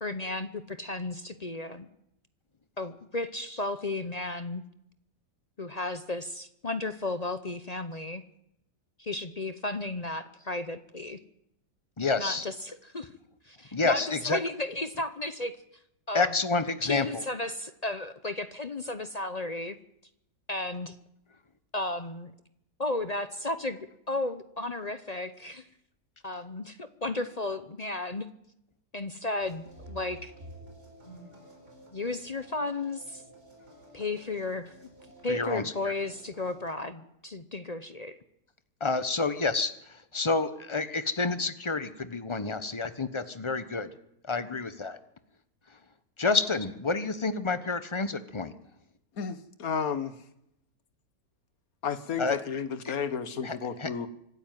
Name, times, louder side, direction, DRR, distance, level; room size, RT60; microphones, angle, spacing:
voice 1, 0.0-1.9 2.8-4.6 5.6-8.2 9.0-11.2 12.2-13.1 13.4-15.6 16.1-16.3 16.8-19.8 20.5-21.0 21.7-22.3 22.8-23.8 24.1-25.7 26.2-28.3 28.9-30.3 31.9-33.2 33.9-34.9 35.2-38.2, left 2 dB, 40° left, 11 dB, 0.6 m, -34 dB
voice 2, 12.0-12.4 13.7-14.4 16.1-17.2 35.3-35.9 38.8-43.9 44.3-45.0 46.2-48.5 52.2-52.4 53.4-53.9, left 3 dB, 20° left, 12 dB, 1.0 m, -29 dB
sound 1, 29.4-36.7, right 1 dB, 35° right, 4.9 m, -51 dB
voice 3, 49.2-50.1 51.8-54.1, left 6 dB, 60° left, 12 dB, 1.6 m, -32 dB
25.0 x 12.5 x 9.2 m, 0.79 s
omnidirectional pair, 1.8 m